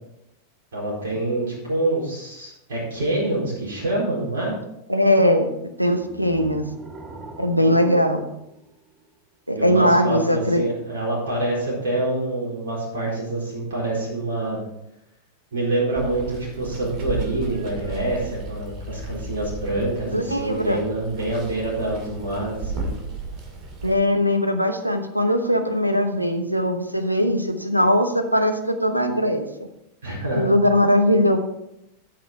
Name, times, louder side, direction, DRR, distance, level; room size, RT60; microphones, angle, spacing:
voice 1, 0.7-4.6 9.5-14.6 15.5-23.0 30.0-30.5, right 2 dB, 65° right, -5 dB, 4.4 m, -26 dB
voice 2, 4.9-5.5 5.8-6.7 7.4-8.2 9.5-10.6 20.1-20.8 23.8-29.5 30.3-31.4, equal, 90° right, 7 dB, 1.0 m, -20 dB
sound 1, 5.9-9.1, right 3 dB, 20° right, 1.6 m, -40 dB
Water, 16.0-23.9, right 3 dB, 40° right, 2.4 m, -34 dB
13.0 x 6.1 x 4.4 m, 0.85 s
figure-of-eight pair, 90°, 0 cm